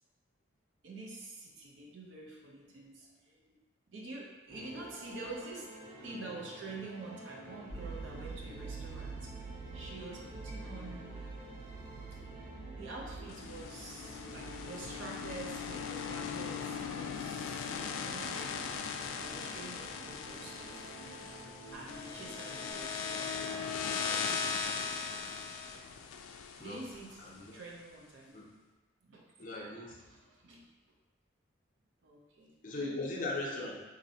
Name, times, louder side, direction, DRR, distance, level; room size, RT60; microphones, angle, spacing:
voice 1, 0.8-3.6 3.9-5.7 6.0-11.2 12.1-12.2 12.7-17.7 18.0-18.7 19.1-21.3 21.7-24.8 26.6-28.4 29.0-29.5 30.0-30.6 32.0-33.1, right 2 dB, 70° right, -2 dB, 0.6 m, -48 dB
Railway Voyage Calming Sea, 4.5-22.7, right 1 dB, 40° right, 1.4 m, -51 dB
sound 1, 7.7-16.7 17.0-17.2, right 4 dB, 20° right, 0.4 m, -47 dB
sound 2, 13.3-27.5, left 6 dB, 90° left, 0.3 m, -39 dB
voice 2, 27.2-27.6 28.3-28.5 29.4-29.9 32.6-33.8, left 2 dB, 40° left, -2 dB, 0.5 m, -38 dB
4.0 x 2.6 x 2.7 m, 1.3 s
head